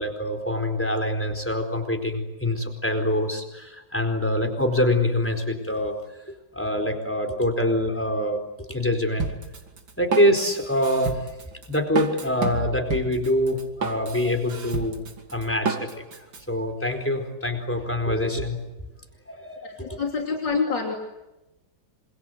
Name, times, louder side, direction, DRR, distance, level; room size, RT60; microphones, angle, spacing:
voice 1, 0.0-5.9 6.5-8.4 8.7-9.3 10.0-11.2 11.7-15.0 15.3-18.6 19.3-20.0 20.5-20.6, left 1 dB, 5° left, 6 dB, 4.4 m, -25 dB
Drum kit, 9.2-16.4, right 4 dB, 85° right, 3.4 m, -31 dB
voice 2, 19.6-21.0, left 4 dB, 70° left, 1 dB, 3.9 m, -27 dB
27.0 x 27.0 x 8.0 m, 0.98 s
omnidirectional pair, 2.0 m